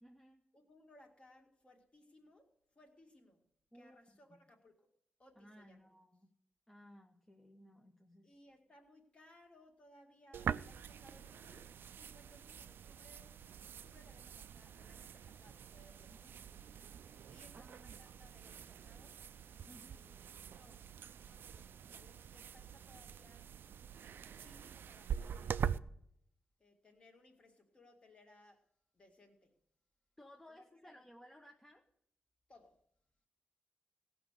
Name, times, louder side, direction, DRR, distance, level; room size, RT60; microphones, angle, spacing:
voice 1, 0.0-0.4 3.7-4.0 5.4-6.3 6.7-8.4 16.0-16.4 17.5-18.0 19.7-20.0 30.2-31.8, equal, 10° left, 2 dB, 0.8 m, -59 dB
voice 2, 0.5-3.4 3.7-4.9 5.2-5.9 8.2-13.4 13.8-16.3 17.2-19.2 19.8-20.9 21.2-23.5 24.2-25.8 26.6-28.7 28.9-29.5 30.5-31.0 32.5-32.8, left 1 dB, 30° left, 2 dB, 2.1 m, -64 dB
sound 1, 10.3-25.8, right 8 dB, 65° right, 0.4 m, -45 dB
17.5 x 6.1 x 6.7 m, 0.70 s
wide cardioid pair, 170°, 4 cm